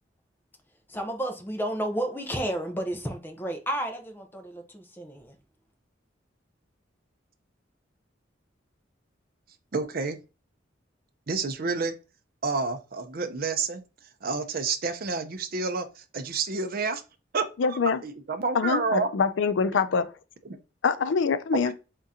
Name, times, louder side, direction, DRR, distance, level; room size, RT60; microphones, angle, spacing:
voice 1, 0.9-5.4, right 1 dB, 10° left, 0.7 m, -32 dB
voice 2, 9.7-10.2 11.3-12.0 12.4-13.8 14.2-17.0 17.3-19.1 20.4-20.6 21.6-21.7, right 4 dB, 50° right, 0.6 m, -29 dB
voice 3, 17.6-18.0 18.5-20.1 20.8-21.7, left 5 dB, 85° left, 0.4 m, -24 dB
3.7 x 3.7 x 2.8 m
head